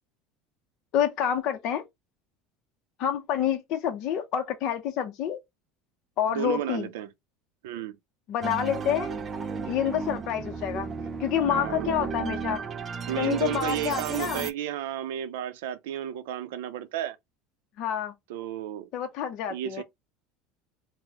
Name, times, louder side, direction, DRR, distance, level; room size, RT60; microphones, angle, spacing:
voice 1, 0.9-1.8 3.0-5.4 6.2-6.9 8.3-9.1 9.6-10.9 11.2-12.6 13.2-14.5 17.8-18.1 18.9-19.8, left 9 dB, 55° left, 0.5 m, -28 dB
voice 2, 6.3-7.1 7.6-8.0 11.5-12.1 13.1-17.2 18.3-18.9 19.5-19.8, right 11 dB, 85° right, 0.5 m, -32 dB
sound 1, 8.4-14.5, right 5 dB, 30° right, 0.4 m, -34 dB
3.7 x 2.0 x 2.9 m
supercardioid pair, 120°, 0 cm